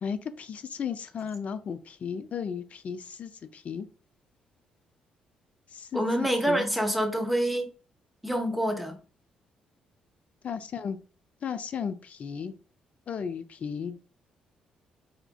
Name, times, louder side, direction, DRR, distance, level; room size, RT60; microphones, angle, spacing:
voice 1, 0.0-3.3 3.7-3.9 5.9-6.7 10.4-11.0 11.4-12.5 13.1-13.9, left 7 dB, 50° left, 0.4 m, -34 dB
voice 2, 5.9-7.7 8.2-9.0, right 1 dB, ahead, 0.9 m, -26 dB
4.4 x 2.4 x 2.3 m
hypercardioid pair, 45°, 3 cm